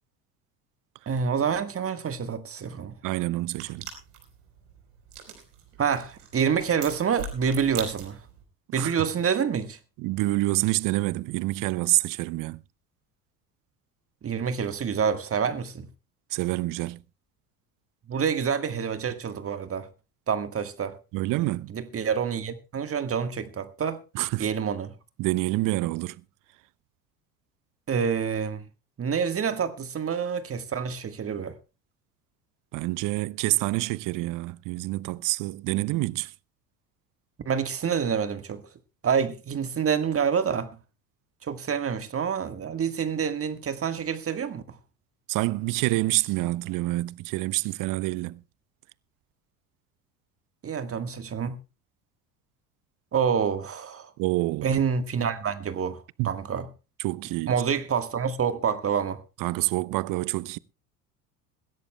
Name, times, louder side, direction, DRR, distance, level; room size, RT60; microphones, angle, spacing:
voice 1, 1.1-2.9 5.8-8.2 8.7-9.8 14.2-15.9 18.1-19.9 20.3-21.0 21.7-24.0 24.4-24.9 27.9-28.6 29.0-31.6 37.4-38.6 39.0-40.7 41.4-44.6 50.6-51.6 53.1-54.1 54.6-56.0 56.2-56.7 57.5-59.2, right 7 dB, 30° right, 1.5 m, -27 dB
voice 2, 3.0-3.9 8.7-8.9 10.0-12.6 16.3-17.0 21.1-21.7 24.1-24.5 25.2-26.2 32.7-36.3 45.3-48.4 54.2-54.7 56.2-56.3 57.0-57.5 59.4-60.6, right 19 dB, 45° right, 0.6 m, -27 dB
sound 1, 3.4-8.4, right 6 dB, 75° right, 4.2 m, -41 dB
21.0 x 16.0 x 2.2 m
hypercardioid pair, 70°, 46 cm